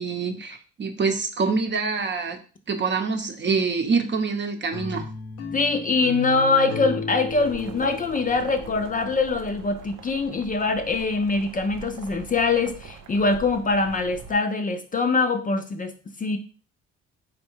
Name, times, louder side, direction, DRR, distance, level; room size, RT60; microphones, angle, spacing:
voice 1, 0.0-2.4 2.7-5.1, right 4 dB, 40° right, 5 dB, 0.8 m, -25 dB
sound 1, 4.7-9.8, left 4 dB, 80° left, 0.8 m, -35 dB
voice 2, 5.5-15.9 16.2-16.4, left 3 dB, 30° left, 6 dB, 0.5 m, -23 dB
sound 2, 7.3-14.4, right 6 dB, 70° right, 0.6 m, -43 dB
3.8 x 2.2 x 4.5 m, 0.38 s
cardioid pair, 80°, 29 cm